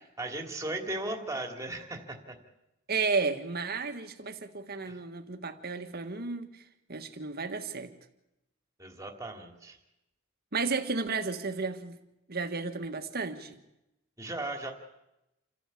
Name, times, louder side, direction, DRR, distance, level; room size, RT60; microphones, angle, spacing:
voice 1, 0.0-2.4 4.8-5.0 8.8-9.8 14.2-14.7, right 2 dB, 15° right, 3 dB, 2.6 m, -37 dB
voice 2, 2.9-6.6 6.9-7.9 10.5-12.0 12.3-13.6, right 4 dB, 45° right, 7 dB, 1.7 m, -33 dB
28.5 x 13.0 x 8.5 m, 0.90 s
head